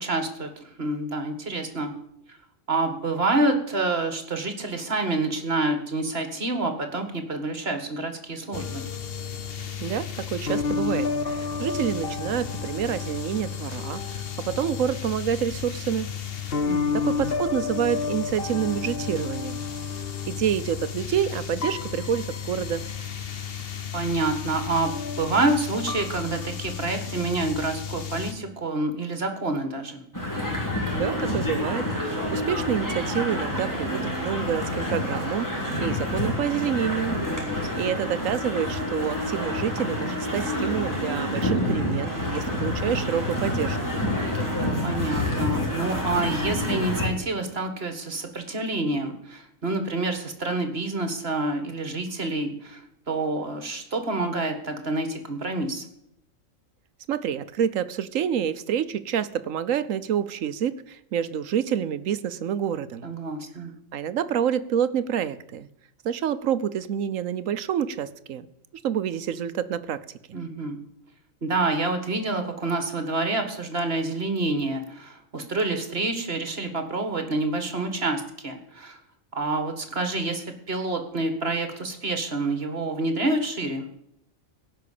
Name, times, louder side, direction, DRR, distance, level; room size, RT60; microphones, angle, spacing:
voice 1, 0.0-1.9 2.7-8.9 16.6-17.0 23.9-30.0 37.3-37.9 44.8-55.8 63.0-63.7 70.3-70.8 71.4-79.0 79.3-83.9, right 2 dB, 50° right, 7 dB, 2.0 m, -28 dB
sound 1, 8.5-28.3, left 6 dB, 50° left, 1.1 m, -31 dB
voice 2, 9.8-16.1 16.9-19.6 20.3-22.8 30.9-37.1 37.8-43.8 57.1-63.1 63.9-65.7 66.0-68.5 68.8-70.4, right 9 dB, 75° right, 14 dB, 1.2 m, -28 dB
sound 2, 30.1-47.1, left 1 dB, 15° left, 3.3 m, -28 dB
17.0 x 5.9 x 8.6 m, 0.76 s
omnidirectional pair, 1.4 m